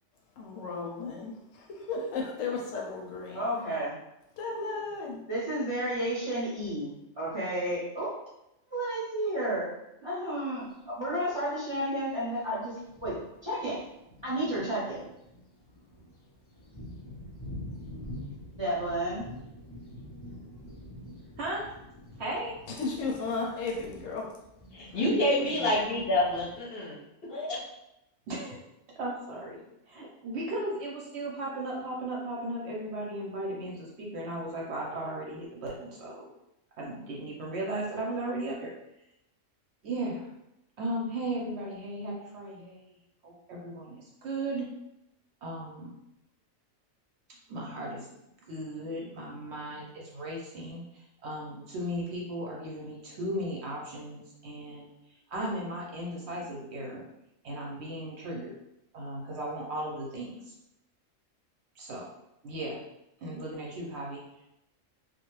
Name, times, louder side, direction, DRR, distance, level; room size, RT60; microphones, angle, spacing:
voice 1, 0.4-1.3 1.7-3.5 4.4-5.3 22.8-24.3, left 4 dB, 80° left, 0 dB, 1.0 m, -34 dB
voice 2, 3.3-3.9 5.3-8.1 8.7-9.7 10.0-13.2 13.4-13.8 14.2-15.1 18.5-19.3, right 1 dB, 30° right, -8 dB, 0.6 m, -32 dB
Thunder, 10.6-10.7 11.7-11.8 12.4-12.5 12.8-26.6, left 1 dB, 40° left, 0.3 m, -47 dB
voice 3, 22.2-22.6 24.9-25.0 25.5-25.7 28.3-28.6 29.0-29.6 29.9-36.3 36.8-38.7 39.8-40.3 40.8-43.0 43.2-44.7 45.4-45.9 47.5-48.1 48.4-54.9 55.3-57.1 57.4-58.5 58.9-60.5 61.8-62.0 62.4-62.8 63.2-64.2, right 1 dB, 65° right, -2 dB, 0.8 m, -36 dB
voice 4, 24.7-27.0 27.2-27.6, left 1 dB, 55° left, -5 dB, 0.8 m, -27 dB
2.4 x 2.1 x 3.0 m, 0.85 s
omnidirectional pair, 1.4 m